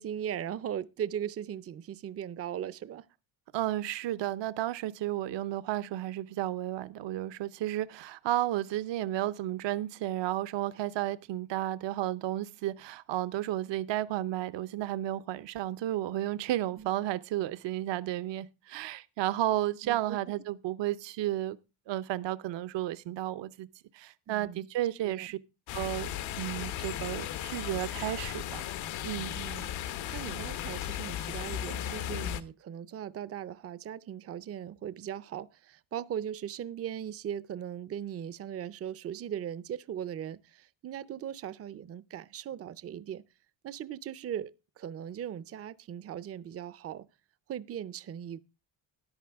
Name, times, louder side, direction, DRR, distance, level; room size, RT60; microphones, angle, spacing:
voice 1, 0.0-3.1 16.8-16.9 19.8-20.2 24.3-24.7 25.0-25.3 29.3-29.7 30.1-43.2 43.6-47.1 47.5-48.4, right 9 dB, 30° right, 0.5 m, -39 dB
voice 2, 3.5-21.6 21.9-23.7 23.9-25.4 25.7-26.1 26.4-28.6 29.0-29.4, right 14 dB, 65° right, 0.8 m, -32 dB
sound 1, 25.7-32.4, left 11 dB, 85° left, 1.2 m, -36 dB
13.5 x 10.5 x 3.5 m
cardioid pair, 115°, 46 cm